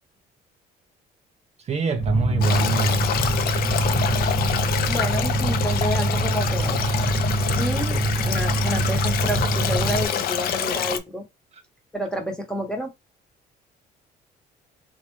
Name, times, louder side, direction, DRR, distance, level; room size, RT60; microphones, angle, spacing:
voice 1, 1.7-3.1, right 5 dB, 40° right, 0.5 m, -25 dB
sound 1, 2.0-10.1, right 1 dB, 35° left, 1.4 m, -24 dB
Stream, 2.4-11.0, left 8 dB, 60° left, 0.5 m, -27 dB
voice 2, 4.9-6.9 7.6-11.2 11.9-12.9, equal, 5° left, 0.9 m, -29 dB
3.7 x 2.2 x 3.1 m
cardioid pair, 110°, 17 cm